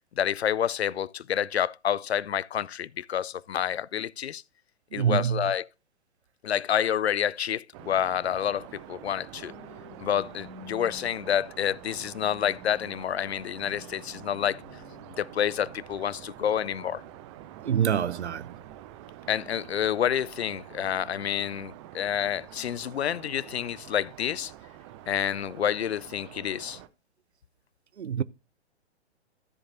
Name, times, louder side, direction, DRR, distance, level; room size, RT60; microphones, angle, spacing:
voice 1, 0.2-4.4 4.9-5.7 6.4-9.5 10.0-14.6 15.2-17.0 19.3-24.5 25.1-26.8, left 9 dB, 65° left, 0.5 m, -28 dB
voice 2, 4.9-5.5 17.6-18.5 28.0-28.2, right 9 dB, 70° right, 0.6 m, -26 dB
sound 1, 7.7-26.9, right 13 dB, 25° right, 0.7 m, -47 dB
sound 2, 9.0-19.5 20.0-20.3, left 3 dB, 40° left, 2.5 m, -53 dB
13.5 x 7.9 x 2.6 m
figure-of-eight pair, 120°, 34 cm